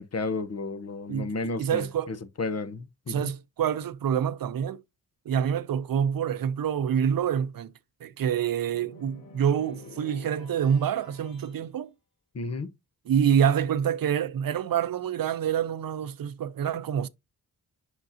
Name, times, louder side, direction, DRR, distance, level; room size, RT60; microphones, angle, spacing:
voice 1, 0.0-3.3 12.3-12.7, left 3 dB, 45° left, 0.8 m, -33 dB
voice 2, 1.1-2.1 3.1-4.8 5.3-7.7 8.0-11.9 13.1-17.1, right 8 dB, 75° right, 0.6 m, -27 dB
sound 1, 8.6-11.6, left 3 dB, 90° left, 4.2 m, -49 dB
7.8 x 5.9 x 2.7 m
wide cardioid pair, 100°, 35 cm